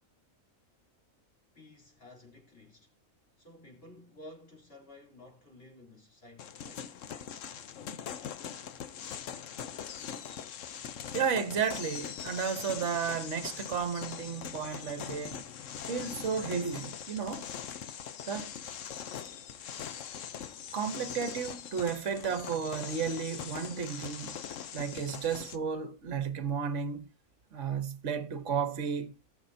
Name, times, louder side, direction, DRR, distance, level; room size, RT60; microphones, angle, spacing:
voice 1, 1.5-2.9 3.4-6.9, left 1 dB, 45° left, 4.0 m, -53 dB
sound 1, 6.4-25.6, left 8 dB, 70° left, 1.2 m, -42 dB
voice 2, 11.1-15.4 15.9-17.5 18.3-18.5 20.7-24.4 24.7-27.1 27.5-29.1, right 6 dB, 65° right, 1.4 m, -33 dB
19.5 x 6.6 x 2.7 m
omnidirectional pair, 1.4 m